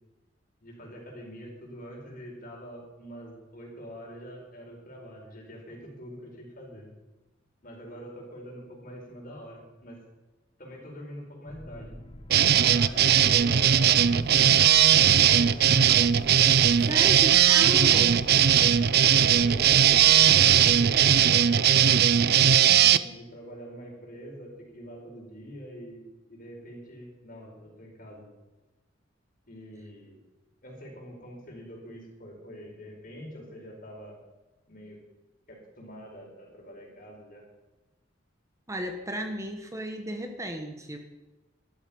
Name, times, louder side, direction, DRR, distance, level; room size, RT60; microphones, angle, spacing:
voice 1, 0.6-6.9 7.6-10.0 10.6-11.9 12.6-15.8 16.8-17.3 19.1-28.3 29.5-30.2 30.6-34.2 34.7-35.0 35.5-37.4, equal, 45° left, 0 dB, 4.9 m, -44 dB
sound 1, 11.5-21.3, left 1 dB, 30° left, 1.3 m, -45 dB
sound 2, 12.3-23.0, right 9 dB, 55° right, 0.5 m, -19 dB
voice 2, 16.8-18.2 38.7-41.0, right 1 dB, 15° right, 5 dB, 1.1 m, -34 dB
12.0 x 9.0 x 9.5 m, 1.1 s
head